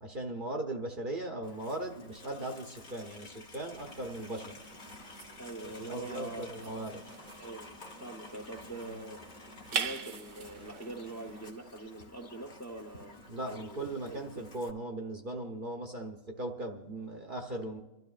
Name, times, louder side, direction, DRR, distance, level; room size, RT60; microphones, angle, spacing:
voice 1, 0.0-4.5 5.6-7.0 13.3-17.8, right 1 dB, 40° right, 2 dB, 0.9 m, -38 dB
Livestock farm animals working animals, 1.4-14.7, left 2 dB, 35° left, 1.1 m, -52 dB
sound 1, 3.8-11.5, right 6 dB, 60° right, 1.2 m, -43 dB
voice 2, 5.4-6.7 7.4-7.8 8.0-9.2 9.7-13.2 13.5-14.5, right 2 dB, 15° left, 2 dB, 0.7 m, -44 dB
29.5 x 12.0 x 2.5 m, 1.0 s
omnidirectional pair, 1.5 m